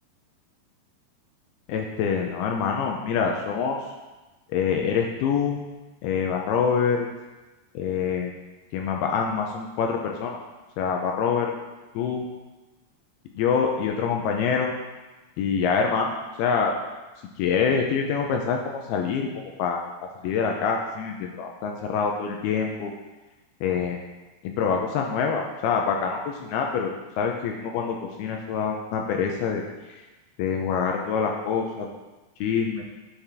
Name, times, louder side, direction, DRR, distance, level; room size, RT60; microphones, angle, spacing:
voice 1, 1.7-3.8 4.5-5.6 6.0-7.1 7.8-8.3 8.7-10.4 10.8-11.5 12.0-12.3 13.4-14.7 15.4-16.7 17.4-19.8 20.2-22.9 23.6-24.0 24.4-26.9 27.2-29.6 29.9-30.0 30.4-31.9 32.4-32.8, left 6 dB, 85° left, 2 dB, 2.3 m, -25 dB
10.0 x 5.7 x 3.4 m, 1.1 s
omnidirectional pair, 5.0 m